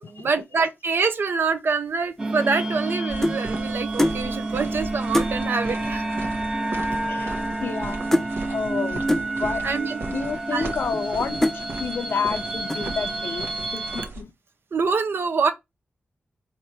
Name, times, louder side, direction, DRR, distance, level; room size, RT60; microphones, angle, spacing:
voice 1, 0.0-6.1 7.0-7.1 9.6-10.0 10.5-10.7 14.7-15.5, right 4 dB, 70° right, 0.7 m, -25 dB
sound 1, 2.2-14.1, right 2 dB, 20° right, 0.8 m, -29 dB
sound 2, 2.3-3.5 4.0-4.2 4.7-4.8 5.1-5.4 6.3-6.4 6.6-6.9 7.2-7.8 8.1-8.3 9.1-9.3 10.0-10.1 10.7-11.1 11.4-11.6 12.2-12.4 12.7-13.1, left 1 dB, 10° left, 0.5 m, -25 dB
sound 3, 3.1-14.2, right 2 dB, 90° right, 1.1 m, -37 dB
voice 2, 6.9-7.3 7.6-9.1 9.4-9.7 10.1-14.3, left 5 dB, 70° left, 0.5 m, -30 dB
4.6 x 2.6 x 4.2 m
wide cardioid pair, 85°, 4 cm